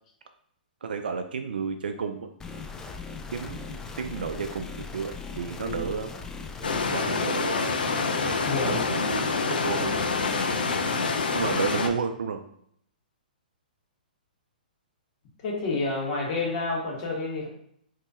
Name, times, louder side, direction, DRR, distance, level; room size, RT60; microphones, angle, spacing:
voice 1, 0.8-2.3 3.3-3.7 4.0-6.1 6.9-7.8 8.2-10.0 11.3-12.4, right 6 dB, 75° right, 6 dB, 0.3 m, -32 dB
sound 1, 2.4-6.8, left 4 dB, 10° left, 0.3 m, -39 dB
voice 2, 5.6-6.0 8.4-8.8 15.4-17.5, left 3 dB, 45° left, -2 dB, 1.3 m, -29 dB
sound 2, 6.6-11.9, left 4 dB, 75° left, 0.5 m, -26 dB
2.8 x 2.7 x 3.6 m, 0.68 s
hypercardioid pair, 125°, 5 cm